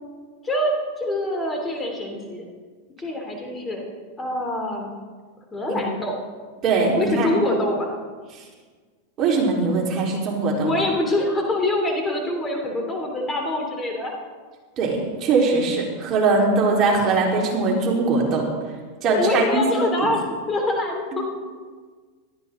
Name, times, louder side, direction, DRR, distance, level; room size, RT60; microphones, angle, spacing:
voice 1, 0.4-2.4 3.0-3.9 4.2-4.9 5.5-6.3 6.9-8.0 10.6-14.1 19.1-21.4, left 1 dB, 20° left, 2 dB, 3.2 m, -25 dB
voice 2, 6.6-7.3 9.2-10.7 14.8-18.4 19.0-19.6, right 3 dB, 40° right, -2 dB, 4.1 m, -21 dB
17.5 x 13.0 x 3.9 m, 1.5 s
hypercardioid pair, 110°, 0 cm